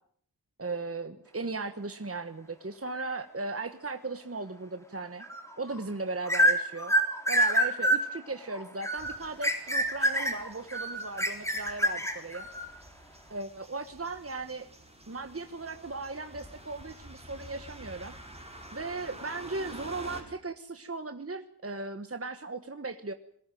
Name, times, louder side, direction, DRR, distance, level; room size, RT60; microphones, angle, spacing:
voice 1, 0.6-5.2 5.6-6.9 7.3-12.5 13.3-14.7 15.1-18.1 18.7-23.1, right 3 dB, 35° right, 9 dB, 1.3 m, -37 dB
sound 1, 5.2-5.8 6.2-12.7, equal, 5° left, 3.8 m, -27 dB
sound 2, 9.0-20.2, right 1 dB, 15° right, 5.2 m, -49 dB
22.0 x 18.5 x 9.2 m, 0.65 s
wide cardioid pair, 70°, 41 cm